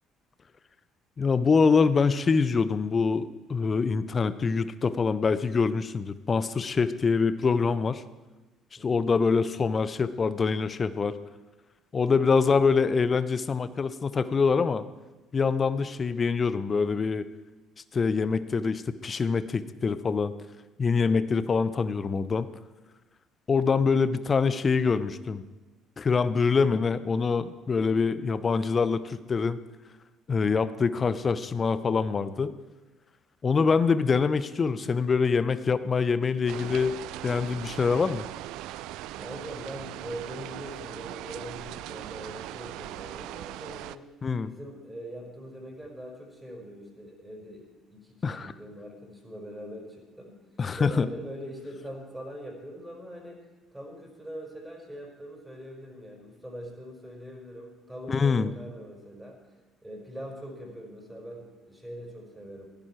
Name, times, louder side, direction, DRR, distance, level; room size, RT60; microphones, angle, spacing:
voice 1, 1.2-8.0 8.8-11.2 11.9-14.8 15.3-17.2 17.9-20.3 20.8-22.5 23.5-25.4 26.0-29.6 30.3-32.5 33.4-36.9 37.2-38.3 44.2-44.5 48.2-48.5 50.6-51.1 58.1-58.5, left 5 dB, 35° left, 14 dB, 0.9 m, -25 dB
voice 2, 8.8-9.2 39.2-44.0 44.4-50.4 50.7-53.4 53.7-59.4 59.8-62.7, equal, 5° right, 0 dB, 5.1 m, -42 dB
sound 1, 36.5-44.0, right 14 dB, 60° right, 0.4 m, -39 dB
17.0 x 15.5 x 4.6 m, 1.2 s
figure-of-eight pair, 50°, 0 cm